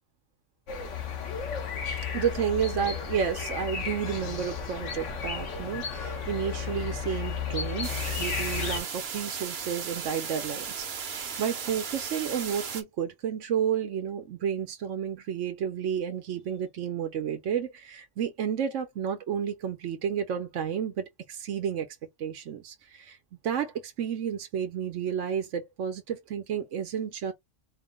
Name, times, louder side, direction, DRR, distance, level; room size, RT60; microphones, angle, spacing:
sound 1, 0.7-8.8, left 6 dB, 75° left, 1.4 m, -33 dB
voice 1, 2.1-23.2 23.4-27.3, right 8 dB, 75° right, 1.1 m, -31 dB
sound 2, 7.8-12.8, right 6 dB, 60° right, 1.0 m, -36 dB
4.3 x 2.1 x 3.8 m
omnidirectional pair, 1.3 m